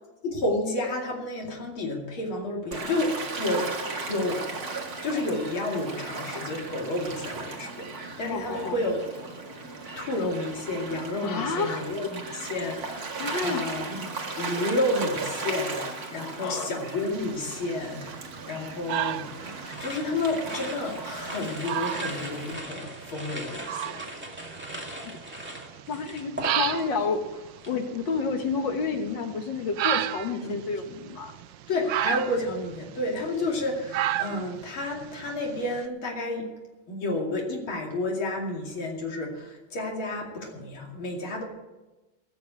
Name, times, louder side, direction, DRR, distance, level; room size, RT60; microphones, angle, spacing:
voice 1, 0.2-4.4 5.0-9.2 10.0-13.1 13.4-18.2 18.5-19.3 19.8-24.0 30.4-30.6 31.7-36.5 36.9-41.4, left 2 dB, 85° left, -1 dB, 3.4 m, -30 dB
Gull seagull / Waves surf, 2.7-22.5, right 3 dB, 50° right, 2.2 m, -37 dB
voice 2, 8.2-8.8 11.2-11.9 13.2-13.7 14.0-14.2 16.4-16.8 25.0-25.1 25.9-31.3, left 4 dB, 65° left, 5 dB, 2.0 m, -30 dB
sound 1, 17.1-35.8, right 12 dB, 75° right, 1.2 m, -34 dB
sound 2, 19.6-27.0 27.3-27.8, right 1 dB, 5° right, 2.1 m, -39 dB
19.0 x 7.0 x 8.5 m, 1.1 s
omnidirectional pair, 2.2 m